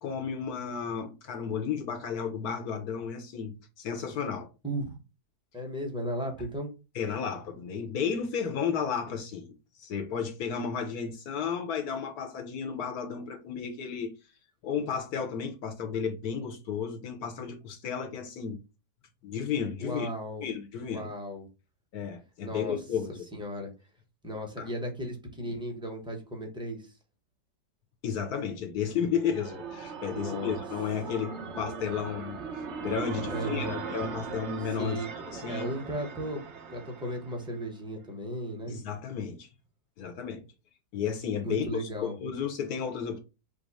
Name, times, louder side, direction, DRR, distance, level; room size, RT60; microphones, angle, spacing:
voice 1, 0.0-4.5 6.9-9.5 9.8-14.1 14.6-18.6 19.2-20.1 20.4-21.1 21.9-23.3 24.6-24.7 28.0-32.4 32.8-35.0 35.3-35.7 38.7-39.5 40.0-40.4 40.9-43.2, left 7 dB, 65° left, 1.2 m, -33 dB
voice 2, 4.6-5.0 5.5-6.7 19.8-20.5 20.8-21.5 22.4-22.8 23.4-23.7 24.2-26.9 30.1-30.6 33.3-33.8 34.8-35.1 35.5-36.4 36.7-38.8 41.4-42.2, equal, 5° right, 0.8 m, -35 dB
sound 1, 28.9-37.7, right 5 dB, 55° right, 0.9 m, -39 dB
5.2 x 2.1 x 4.7 m
omnidirectional pair, 1.8 m